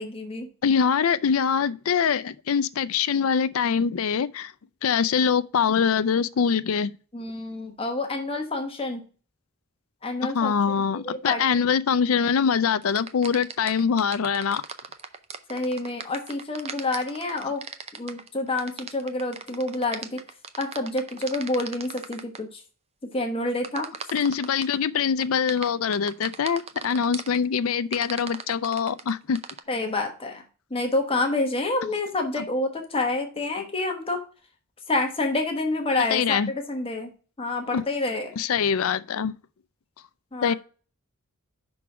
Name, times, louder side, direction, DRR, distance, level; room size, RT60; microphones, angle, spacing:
voice 1, 0.0-0.5 7.1-9.0 10.0-10.5 10.9-11.4 15.5-17.6 18.0-20.2 20.6-22.6 23.1-23.9 29.7-30.4 30.7-34.2 34.9-37.1 37.4-38.4 40.3-40.5, left 2 dB, 25° left, 1.1 m, -28 dB
voice 2, 0.6-4.5 4.8-6.9 10.3-14.6 24.1-29.4 32.4-32.5 36.1-36.5 37.7-37.8 38.4-39.3 40.4-40.5, left 6 dB, 75° left, 0.4 m, -23 dB
sound 1, 12.8-22.4 23.6-24.8 25.2-27.4 27.9-29.6, right 6 dB, 30° right, 0.6 m, -38 dB
5.8 x 3.9 x 5.8 m
head